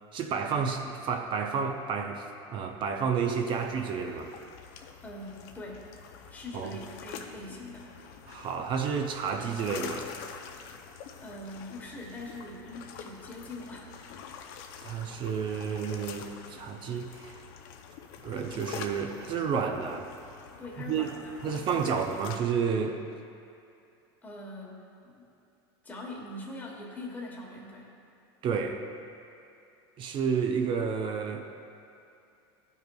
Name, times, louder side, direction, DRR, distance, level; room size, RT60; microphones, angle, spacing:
voice 1, 0.1-2.3 2.5-4.3 6.5-6.8 8.3-10.1 14.8-17.4 18.2-20.1 20.8-21.1 21.4-23.0 28.4-28.8 30.0-31.6, right 6 dB, 35° right, 4 dB, 0.5 m, -30 dB
sound 1, 3.2-22.4, left 7 dB, 65° left, 0.6 m, -46 dB
voice 2, 5.0-5.8 6.3-7.9 11.2-13.9 20.6-22.1 24.2-25.3 25.8-27.9, left 1 dB, 10° left, -3 dB, 1.2 m, -42 dB
12.5 x 5.4 x 2.3 m, 2.6 s
supercardioid pair, 130°, 14 cm